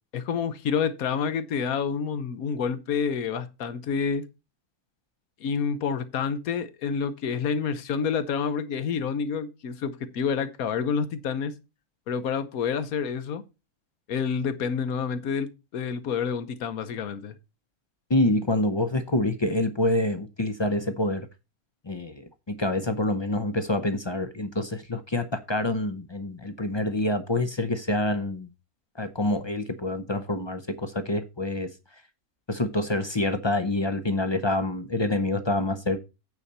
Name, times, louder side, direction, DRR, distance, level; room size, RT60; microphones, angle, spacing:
voice 1, 0.1-4.2 5.4-11.5 12.1-13.4 14.1-17.3, left 6 dB, 75° left, 1.3 m, -28 dB
voice 2, 18.1-21.3 21.9-28.5 29.0-31.7 32.5-36.0, left 1 dB, 40° left, 0.4 m, -27 dB
8.9 x 4.2 x 6.6 m
omnidirectional pair, 1.5 m